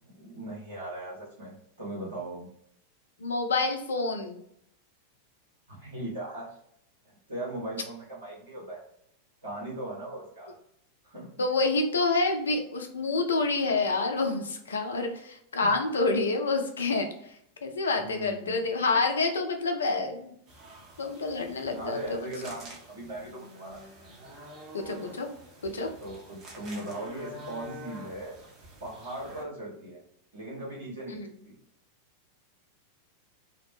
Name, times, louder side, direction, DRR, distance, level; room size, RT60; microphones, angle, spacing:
voice 1, 0.0-2.5 5.7-6.6 7.0-8.8 9.4-10.5 11.0-11.3 15.6-15.7 17.9-18.6 21.7-23.8 26.0-28.4 28.8-30.0 30.3-31.5, right 1 dB, 70° right, -5 dB, 1.4 m, -39 dB
voice 2, 3.2-4.4 11.4-17.3 17.6-20.3 21.0-22.3 24.7-25.3 25.6-25.9 31.2-31.3, left 3 dB, 70° left, 4 dB, 0.4 m, -28 dB
sound 1, 20.5-29.4, equal, 35° right, 0.8 m, -47 dB
2.7 x 2.0 x 2.9 m, 0.72 s
figure-of-eight pair, 90°, 0 cm